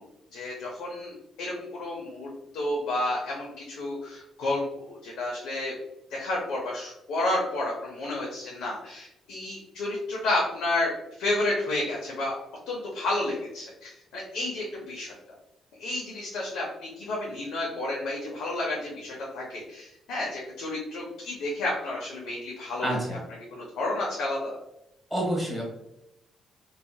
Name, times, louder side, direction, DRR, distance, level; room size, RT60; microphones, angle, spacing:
voice 1, 0.3-5.7 6.1-12.3 12.7-15.1 15.8-22.9 23.5-24.5, left 2 dB, 85° left, -3 dB, 0.6 m, -31 dB
voice 2, 22.8-23.2 25.1-25.6, right 1 dB, ahead, -3 dB, 1.2 m, -28 dB
2.8 x 2.3 x 2.2 m, 0.86 s
cardioid pair, 90°, 0 cm